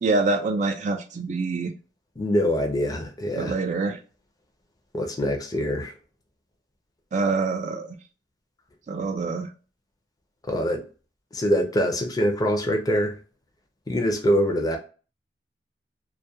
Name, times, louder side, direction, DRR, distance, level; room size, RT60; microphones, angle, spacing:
voice 1, 0.0-1.7 3.4-4.0 7.1-8.0 8.9-9.5, right 3 dB, 40° right, 5 dB, 0.3 m, -25 dB
voice 2, 2.2-3.6 4.9-5.9 10.5-10.8 11.3-13.1 13.9-14.8, equal, 20° left, 3 dB, 0.5 m, -24 dB
2.3 x 2.1 x 2.7 m, 0.36 s
head